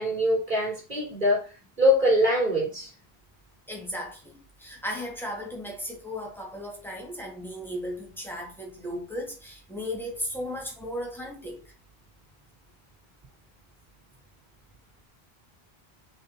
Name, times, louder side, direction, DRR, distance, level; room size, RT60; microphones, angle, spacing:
voice 1, 0.0-1.5 1.8-2.9, left 1 dB, 50° right, 3.5 m, -23 dB
voice 2, 3.7-11.6, equal, ahead, 2.4 m, -36 dB
6.4 x 4.3 x 4.4 m
omnidirectional pair, 1.1 m